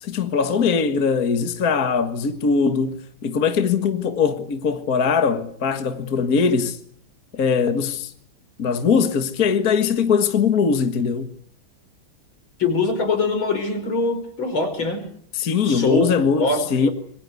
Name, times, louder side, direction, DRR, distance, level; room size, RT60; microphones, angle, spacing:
voice 1, 0.0-6.8 7.3-8.1 8.6-11.3 15.3-16.9, left 6 dB, 45° left, 2.0 m, -21 dB
voice 2, 12.6-15.1 15.6-16.1 16.4-16.9, left 3 dB, 80° left, 5.8 m, -23 dB
26.5 x 23.0 x 8.3 m
omnidirectional pair, 2.2 m